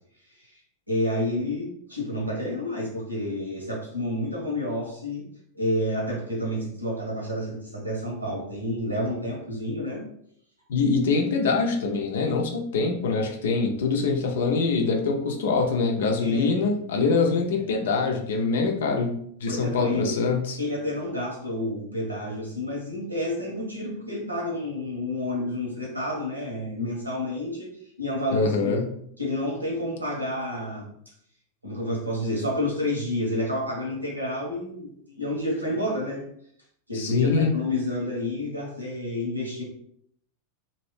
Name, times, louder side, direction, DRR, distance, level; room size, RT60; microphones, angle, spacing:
voice 1, 0.9-5.3 5.5-10.0 16.2-16.7 17.2-17.4 19.5-20.2 20.6-27.7 28.0-28.8 29.2-30.9 31.6-36.2 36.9-39.6, left 1 dB, 85° right, -3 dB, 1.2 m, -29 dB
voice 2, 10.7-20.6 28.3-28.8 36.9-37.5, left 4 dB, 60° left, 2 dB, 0.6 m, -24 dB
2.9 x 2.6 x 3.1 m, 0.68 s
figure-of-eight pair, 90°, 0 cm